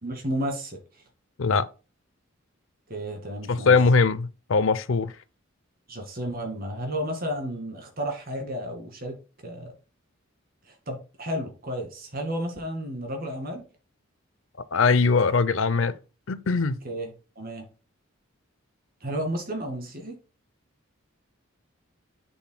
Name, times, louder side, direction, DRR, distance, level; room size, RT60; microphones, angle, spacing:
voice 1, 0.0-0.8 2.9-3.8 5.9-9.2 9.4-9.7 10.9-13.6 16.8-17.1 17.4-17.7 19.0-20.2, equal, 45° right, 2.2 m, -32 dB
voice 2, 3.5-5.1 14.7-15.9 16.3-16.8, left 4 dB, 70° left, 0.6 m, -21 dB
7.9 x 7.0 x 2.2 m
head